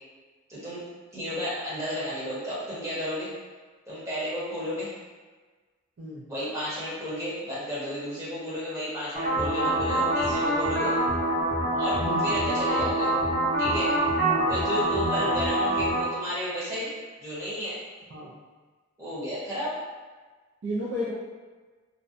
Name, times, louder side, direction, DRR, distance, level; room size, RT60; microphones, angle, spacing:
voice 1, 0.5-0.8 1.1-3.3 3.9-4.9 6.3-11.0 11.7-13.1 13.6-13.9 14.5-16.9 17.2-17.8 19.0-19.7, equal, 15° right, -10 dB, 0.9 m, -32 dB
sound 1, 9.1-16.0, right 1 dB, 45° right, 0.8 m, -25 dB
voice 2, 11.9-12.3 14.2-14.5 15.0-15.3 18.1-18.3 20.6-21.1, equal, 60° right, -8 dB, 0.4 m, -33 dB
2.6 x 2.1 x 2.5 m, 1.4 s
head